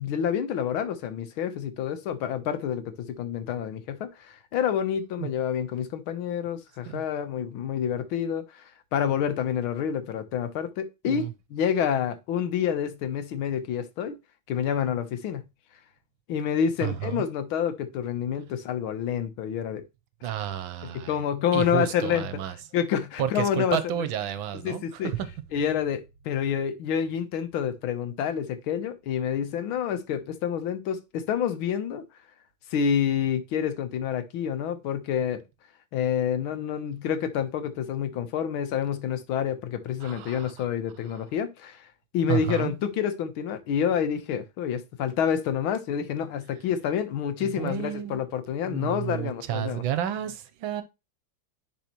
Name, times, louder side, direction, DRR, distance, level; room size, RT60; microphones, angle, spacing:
voice 1, 0.0-8.6 8.9-14.2 14.5-15.5 16.3-19.8 20.8-22.3 22.7-24.1 24.6-25.1 25.5-32.0 32.7-35.4 35.9-41.9 42.1-49.8, left 8 dB, 85° left, 1.7 m, -28 dB
voice 2, 16.8-17.3 20.2-21.1 21.5-22.5 23.2-24.8 25.1-25.3 40.0-40.5 42.3-42.7 47.4-48.2 48.6-50.8, right 11 dB, 80° right, 1.5 m, -31 dB
10.5 x 4.1 x 3.0 m
omnidirectional pair, 2.2 m